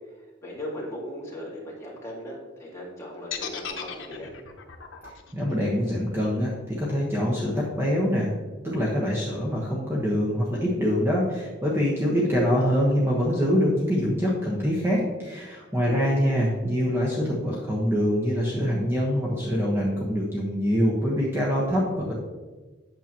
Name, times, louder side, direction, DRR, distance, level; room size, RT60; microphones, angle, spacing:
voice 1, 0.2-4.3 15.8-16.5, equal, 15° left, -5 dB, 2.0 m, -38 dB
sound 1, 3.3-7.4, left 8 dB, 85° left, 0.8 m, -38 dB
voice 2, 5.0-8.3 8.6-22.1, equal, 15° right, -5 dB, 1.2 m, -24 dB
8.6 x 6.8 x 3.0 m, 1.3 s
head